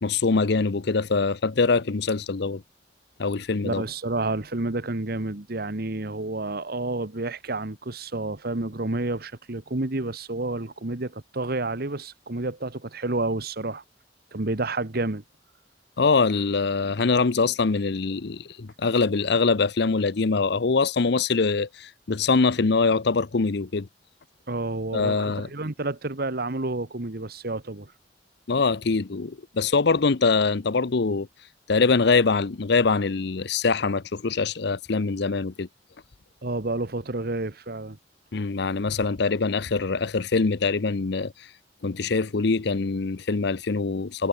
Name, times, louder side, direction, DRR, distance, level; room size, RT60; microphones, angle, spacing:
voice 1, 0.0-2.6 3.2-3.8 16.0-23.9 24.9-25.5 28.5-31.3 31.7-35.7 38.3-41.3 41.8-44.3, left 4 dB, 60° left, 0.7 m, -23 dB
voice 2, 3.6-13.8 14.3-15.2 24.5-27.9 36.4-38.0, right 2 dB, 55° right, 1.4 m, -30 dB
head